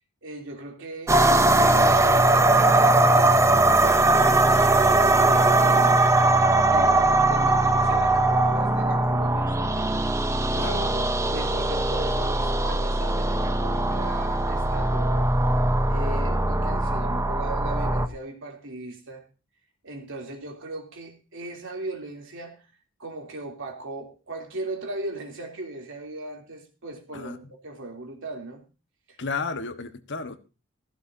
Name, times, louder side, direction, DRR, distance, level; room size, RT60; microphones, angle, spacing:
voice 1, 0.2-6.3 6.7-9.9 10.6-15.3 15.9-19.2 19.8-22.6 23.0-28.6 29.1-29.2, right 2 dB, 65° right, 3.2 m, -38 dB
sound 1, 1.1-18.1, right 2 dB, 15° right, 0.7 m, -20 dB
voice 2, 29.2-30.4, left 4 dB, 60° left, 1.3 m, -32 dB
15.5 x 15.0 x 2.8 m
head